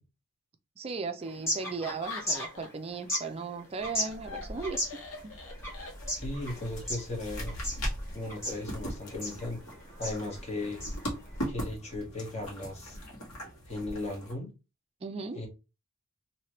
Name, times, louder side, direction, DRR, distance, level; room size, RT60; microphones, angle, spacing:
voice 1, 0.8-4.8 15.0-15.4, right 4 dB, 25° right, 0.4 m, -36 dB
sound 1, 1.2-11.5, left 1 dB, 15° left, 1.4 m, -38 dB
Laughter, 1.6-2.9 3.2-6.4, left 3 dB, 60° left, 1.0 m, -43 dB
sound 2, 3.8-14.3, equal, 90° left, 1.4 m, -40 dB
voice 2, 6.1-7.6 8.1-10.8 11.5-13.0 13.7-14.5 15.3-15.5, left 2 dB, 30° left, 1.2 m, -37 dB
3.0 x 2.8 x 3.0 m
head